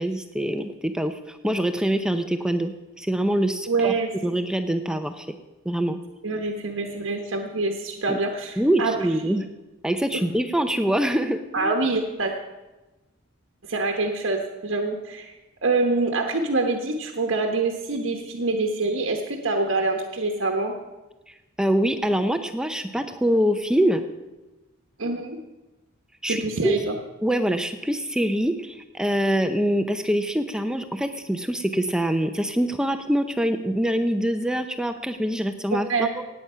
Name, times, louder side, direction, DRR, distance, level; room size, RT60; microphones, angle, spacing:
voice 1, 0.0-3.9 4.2-5.3 5.7-6.0 8.1-8.2 8.6-9.5 9.8-11.7 21.3-24.0 26.2-26.8 27.2-35.9 36.2-36.3, equal, 5° right, 8 dB, 0.5 m, -24 dB
voice 2, 3.7-4.1 6.2-8.9 9.3-9.4 10.1-10.2 11.5-12.3 13.7-15.3 15.6-20.7 25.0-25.4 26.3-26.9 35.7-36.1, right 3 dB, 70° right, 3 dB, 1.2 m, -25 dB
17.5 x 8.6 x 5.6 m, 1.1 s
head